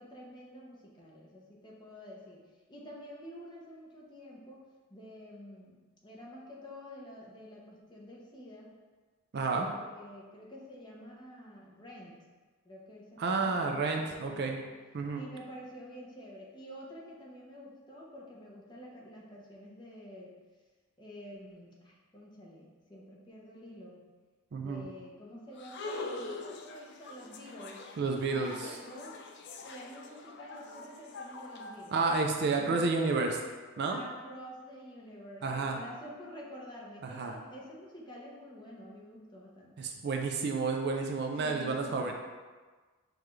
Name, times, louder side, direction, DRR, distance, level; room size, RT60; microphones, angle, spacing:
voice 1, 0.0-8.7 9.5-12.2 12.6-14.6 15.1-20.4 21.0-24.0 24.6-27.9 28.3-32.1 32.6-32.9 33.9-39.7 41.4-42.1, equal, 20° left, -3 dB, 0.8 m, -49 dB
voice 2, 9.3-9.7 13.2-14.6 14.9-15.2 24.5-24.8 28.0-28.8 31.9-33.4 33.8-34.0 35.4-35.8 37.0-37.3 39.8-42.1, right 4 dB, 50° right, 2 dB, 0.4 m, -30 dB
sound 1, 25.6-32.5, left 3 dB, 50° left, 0.4 m, -44 dB
6.4 x 2.4 x 3.1 m, 1.4 s
head